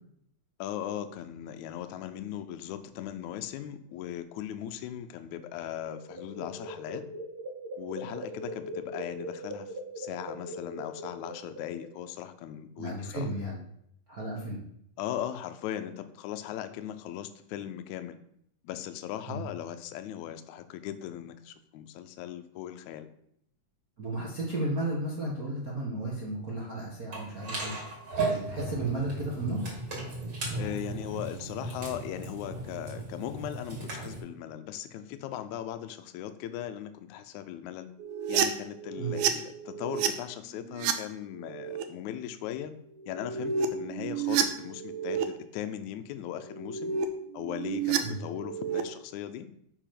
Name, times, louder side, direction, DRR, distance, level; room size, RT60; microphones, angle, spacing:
voice 1, 0.6-7.0 7.8-13.4 15.0-18.2 18.6-23.1 30.6-37.9 38.3-42.7 43.1-46.9 47.3-49.5, left 11 dB, 80° left, 9 dB, 1.8 m, -38 dB
sound 1, 5.4-12.1, right 1 dB, 20° right, 2.6 m, -41 dB
voice 2, 12.8-13.6 14.1-14.6 19.3-19.4 24.0-29.8 39.0-39.1 48.0-48.2, right 2 dB, 60° right, -4 dB, 0.9 m, -34 dB
sound 2, 27.1-34.2, right 3 dB, 40° right, 3.0 m, -36 dB
sound 3, 38.0-40.1 40.5-40.9 41.4-41.8 43.0-45.3 46.4-47.1 47.3-48.8, right 8 dB, 80° right, 1.8 m, -30 dB
6.9 x 5.0 x 5.8 m, 0.72 s
omnidirectional pair, 3.9 m